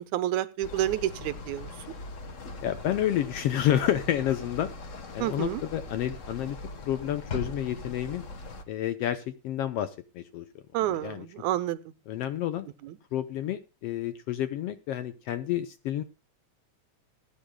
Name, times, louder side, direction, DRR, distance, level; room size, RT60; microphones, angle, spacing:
voice 1, 0.0-1.7 5.2-5.6 10.7-11.8 12.8-13.0, right 13 dB, 80° right, 14 dB, 2.1 m, -29 dB
sound 1, 0.6-8.6, left 3 dB, 90° left, 0.6 m, -40 dB
voice 2, 2.6-4.7 5.1-6.6 6.8-8.2 8.7-10.4 11.0-11.2 12.1-12.7 13.1-16.0, left 11 dB, 75° left, 11 dB, 1.5 m, -29 dB
19.5 x 10.5 x 2.2 m, 0.31 s
omnidirectional pair, 3.3 m